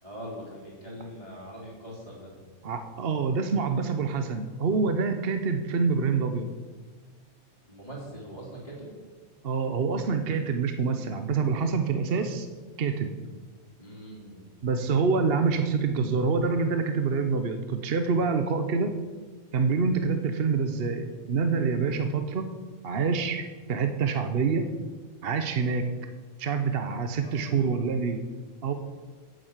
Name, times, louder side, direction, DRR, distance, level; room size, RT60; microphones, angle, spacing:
voice 1, 0.0-2.5 7.7-8.9 13.8-14.5 27.1-27.7, equal, 25° left, -8 dB, 2.9 m, -42 dB
voice 2, 2.6-6.5 9.4-12.5 12.8-13.1 14.6-18.9 19.5-22.5 22.8-24.6 25.2-25.8 26.4-28.2 28.6-28.7, right 5 dB, 50° right, 7 dB, 0.9 m, -26 dB
9.4 x 7.6 x 8.1 m, 1.4 s
omnidirectional pair, 1.5 m